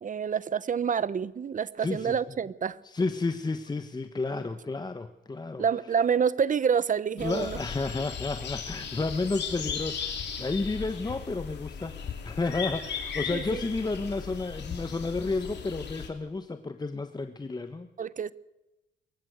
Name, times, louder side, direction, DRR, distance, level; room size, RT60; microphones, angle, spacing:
voice 1, 0.0-2.8 5.6-7.6 13.3-13.6 18.0-18.3, right 7 dB, 40° right, 1.0 m, -27 dB
voice 2, 1.8-2.2 2.8-5.6 7.2-17.9, left 3 dB, 20° left, 1.2 m, -31 dB
sound 1, 7.2-16.1, left 7 dB, 60° left, 3.9 m, -37 dB
23.5 x 15.0 x 8.1 m
cardioid pair, 90°, 20 cm